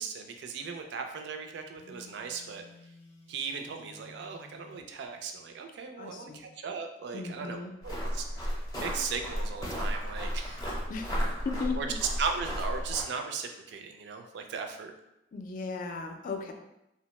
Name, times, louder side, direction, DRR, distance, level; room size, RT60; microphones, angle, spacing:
voice 1, 0.0-2.6 3.3-7.6 7.8-8.3 8.7-10.6 11.8-11.9 12.2-14.9, right 5 dB, 65° right, 5 dB, 0.3 m, -37 dB
Telephone, 1.7-4.9, left 3 dB, 90° left, 0.6 m, -54 dB
voice 2, 6.0-6.5 7.1-7.7 10.9-12.0 15.3-16.5, left 4 dB, 50° left, 4 dB, 0.3 m, -36 dB
sound 1, 7.8-13.0, equal, 20° left, 0.6 m, -33 dB
2.7 x 2.0 x 3.0 m, 0.86 s
head